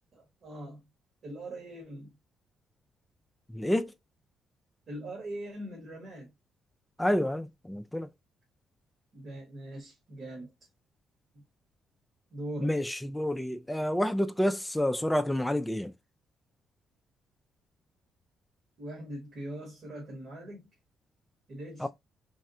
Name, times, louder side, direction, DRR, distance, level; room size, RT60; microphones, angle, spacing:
voice 1, 0.1-0.8 1.2-2.1 4.9-6.3 9.1-10.5 12.3-12.8 18.8-20.7 21.5-21.9, right 1 dB, 55° right, 1.4 m, -41 dB
voice 2, 3.5-3.9 7.0-8.1 12.6-15.9 21.8-21.9, left 1 dB, 5° left, 0.3 m, -29 dB
3.3 x 2.2 x 2.6 m
cardioid pair, 100°, 0 cm